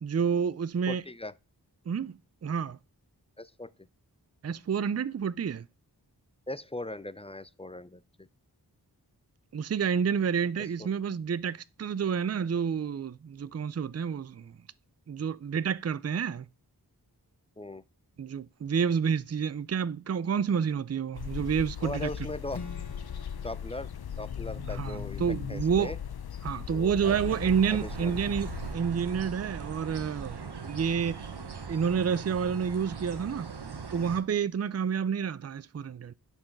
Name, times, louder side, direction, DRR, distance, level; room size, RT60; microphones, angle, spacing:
voice 1, 0.0-1.0 1.9-2.8 4.4-5.7 9.5-14.6 15.1-16.5 18.2-22.1 24.6-26.0 26.4-31.3 31.7-33.5 33.9-36.1, right 7 dB, 40° right, 0.4 m, -29 dB
voice 2, 0.9-1.3 3.4-3.7 6.5-8.3 10.6-10.7 17.6-17.8 21.8-22.6 23.4-23.9 24.2-25.2 25.5-26.0 26.7-27.2 27.4-28.2, left 2 dB, 15° left, 0.5 m, -39 dB
sound 1, 21.1-28.8, left 8 dB, 70° left, 0.6 m, -38 dB
Strum, 22.5-26.6, left 3 dB, 45° left, 1.4 m, -49 dB
sound 2, 27.0-34.2, right 5 dB, 80° right, 1.1 m, -40 dB
10.5 x 4.6 x 5.9 m
wide cardioid pair, 55°, 39 cm